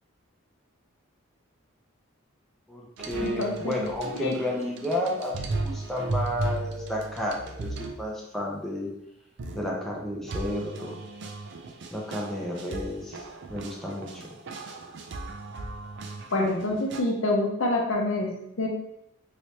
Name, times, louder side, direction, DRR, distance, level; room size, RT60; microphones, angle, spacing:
voice 1, 2.7-8.9 9.5-11.0 11.9-13.2 13.5-14.3, left 1 dB, ahead, -3 dB, 0.5 m, -32 dB
sound 1, 3.0-8.0 9.4-17.0, right 3 dB, 60° right, 0.4 m, -36 dB
voice 2, 3.2-3.8 4.2-4.4 16.3-18.7, left 2 dB, 80° left, 1 dB, 0.7 m, -27 dB
3.2 x 3.0 x 2.7 m, 0.79 s
head